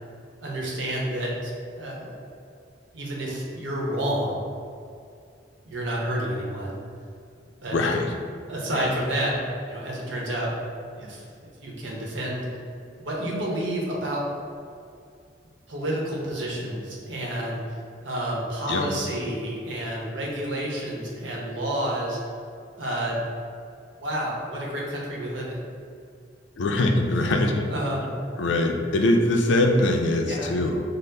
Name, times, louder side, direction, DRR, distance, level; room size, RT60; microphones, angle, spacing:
voice 1, 0.4-2.1 2.9-4.5 5.6-6.8 7.4-7.8 8.5-9.4 9.7-10.5 10.9-12.5 13.0-14.3 15.7-17.6 18.0-22.2 22.8-23.2 24.0-25.6 27.7-28.2 30.3-30.5, right 1 dB, 70° right, -3 dB, 0.9 m, -30 dB
voice 2, 7.7-8.1 8.7-8.9 18.7-18.9 26.6-27.7 28.4-30.8, left 2 dB, 70° left, 3 dB, 0.4 m, -22 dB
5.3 x 2.0 x 3.3 m, 2.4 s
head